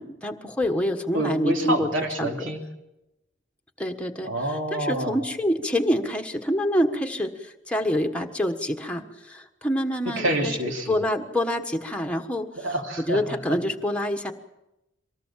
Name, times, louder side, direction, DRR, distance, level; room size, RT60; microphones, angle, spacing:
voice 1, 0.0-1.9 2.2-2.3 3.8-4.3 4.7-10.6 10.9-12.5 13.1-14.3, equal, 5° left, 4 dB, 1.4 m, -26 dB
voice 2, 1.1-2.6 4.2-5.2 10.2-11.0 12.6-13.2, right 1 dB, 75° right, 3 dB, 3.0 m, -27 dB
24.0 x 19.0 x 7.5 m, 0.93 s
head